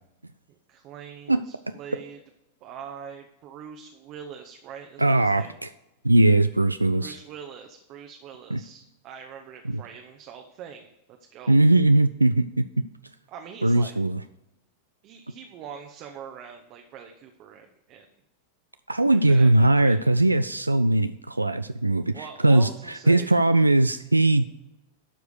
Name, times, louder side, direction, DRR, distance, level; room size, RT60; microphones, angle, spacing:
voice 1, 0.5-2.2 2.6-5.6 7.0-11.7 13.3-14.0 15.0-18.1 19.3-20.0 22.1-23.3, right 7 dB, 40° right, 4 dB, 0.9 m, -43 dB
voice 2, 5.0-5.7 6.0-7.2 8.5-8.6 9.7-9.8 11.5-12.7 13.6-14.2 18.9-24.4, right 2 dB, 85° right, 10 dB, 0.3 m, -20 dB
12.0 x 4.8 x 6.5 m, 0.93 s
figure-of-eight pair, 90°, 0 cm